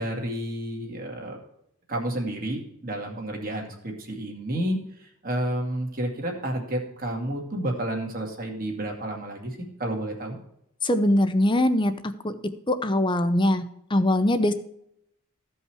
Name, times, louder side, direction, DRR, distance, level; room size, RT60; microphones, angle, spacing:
voice 1, 0.0-1.4 1.9-10.4, right 1 dB, 40° right, 1 dB, 2.1 m, -31 dB
voice 2, 10.8-12.3 12.7-13.6 13.9-14.5, left 1 dB, 20° left, 10 dB, 0.7 m, -22 dB
14.5 x 5.5 x 4.6 m, 0.75 s
head